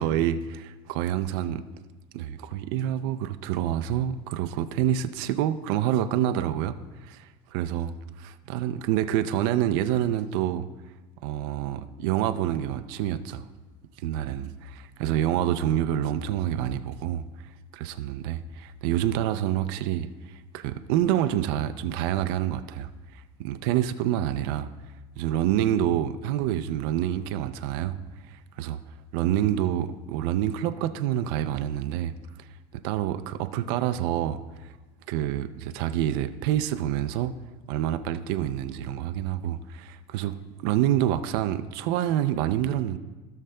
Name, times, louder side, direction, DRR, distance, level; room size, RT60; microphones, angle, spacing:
voice 1, 0.0-1.6 2.1-10.7 11.2-13.5 14.0-14.5 15.0-17.3 17.7-24.7 25.2-28.0 28.3-28.8 29.1-32.1 32.7-34.7 35.1-37.3 37.7-43.0, right 11 dB, 80° right, 0.4 m, -27 dB
16.5 x 6.4 x 2.2 m
cardioid pair, 160°, 12 cm